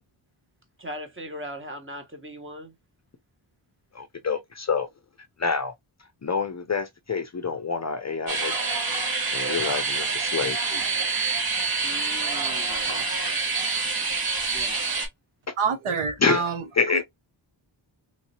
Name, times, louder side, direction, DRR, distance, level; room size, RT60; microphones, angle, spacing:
voice 1, 0.8-2.7 11.8-13.0 14.5-14.8, equal, 25° right, 1.3 m, -39 dB
voice 2, 3.9-4.9 5.4-5.7 6.2-8.8 9.3-10.8 16.2-16.5 16.7-17.0, left 5 dB, 35° left, 0.5 m, -27 dB
sound 1, 8.3-15.1, right 4 dB, 45° right, 1.4 m, -27 dB
voice 3, 15.6-16.6, right 5 dB, 75° right, 0.9 m, -26 dB
3.1 x 2.7 x 2.8 m
cardioid pair, 50°, 50 cm